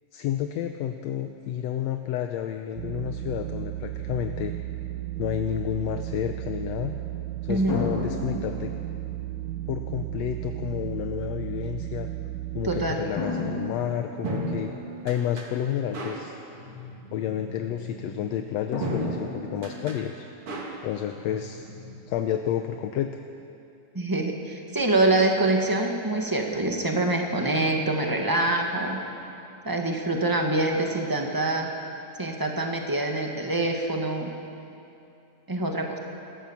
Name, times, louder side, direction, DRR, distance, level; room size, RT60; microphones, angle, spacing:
voice 1, 0.1-4.5 5.2-7.0 7.4-8.7 9.7-12.1 12.5-14.7 15.0-16.4 17.1-20.3 20.8-21.7 22.1-23.1, left 10 dB, 75° left, 6 dB, 1.8 m, -30 dB
sound 1, 2.8-12.9, right 14 dB, 80° right, 2.2 m, -34 dB
voice 2, 7.5-7.8 12.6-13.0 23.9-29.0 29.6-31.7 32.2-34.3 35.5-36.0, right 2 dB, 10° right, 1 dB, 0.9 m, -25 dB
sound 2, 7.7-9.4 10.4-10.5 13.2-14.9 18.7-20.0, left 3 dB, 40° left, 2.5 m, -34 dB
sound 3, 13.9-22.0, right 1 dB, 50° right, 3.1 m, -36 dB
26.0 x 14.5 x 7.3 m, 2.7 s
omnidirectional pair, 3.4 m